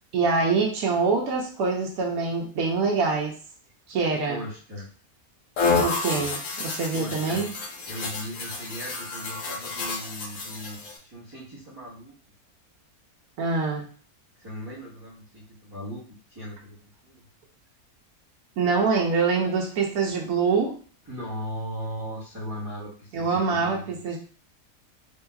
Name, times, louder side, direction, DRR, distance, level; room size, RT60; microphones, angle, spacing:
voice 1, 0.1-3.3 3.9-4.4 5.8-7.5 13.4-13.9 18.6-20.7 23.1-24.2, right 4 dB, 85° right, 0 dB, 1.1 m, -25 dB
voice 2, 4.3-4.9 6.7-7.4 7.9-12.1 14.4-16.0 16.3-16.8 17.0-17.2 21.0-24.1, equal, 20° right, -11 dB, 1.0 m, -38 dB
sound 1, 5.6-11.0, left 4 dB, 65° left, 1.1 m, -29 dB
3.6 x 2.8 x 2.3 m, 0.40 s
omnidirectional pair, 1.6 m